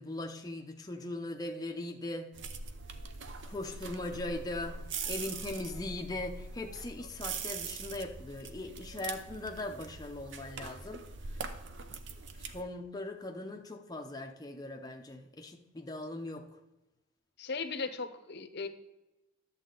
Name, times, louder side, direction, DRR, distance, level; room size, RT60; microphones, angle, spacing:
voice 1, 0.0-2.3 3.5-4.8 5.1-11.0 11.3-11.4 12.4-16.6, left 2 dB, 15° left, 3 dB, 0.6 m, -40 dB
sound 1, 2.3-12.6, right 4 dB, 55° right, 0.7 m, -42 dB
voice 2, 17.4-18.7, left 4 dB, 50° left, 9 dB, 0.7 m, -37 dB
11.0 x 7.4 x 3.8 m, 0.99 s
head